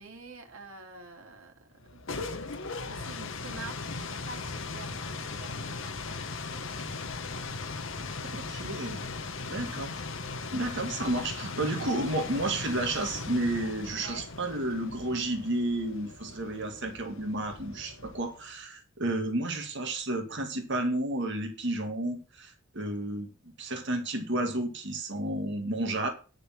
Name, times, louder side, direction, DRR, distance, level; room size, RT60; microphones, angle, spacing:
voice 1, 0.0-1.7 2.9-8.7 14.0-14.3, right 3 dB, 75° right, 3 dB, 2.6 m, -48 dB
sound 1, 1.8-18.5, left 3 dB, 60° left, 1.2 m, -38 dB
voice 2, 8.5-9.1 9.5-10.0 10.5-23.3 23.6-26.1, right 1 dB, 55° right, 4 dB, 2.1 m, -31 dB
10.0 x 6.5 x 7.4 m, 0.35 s
head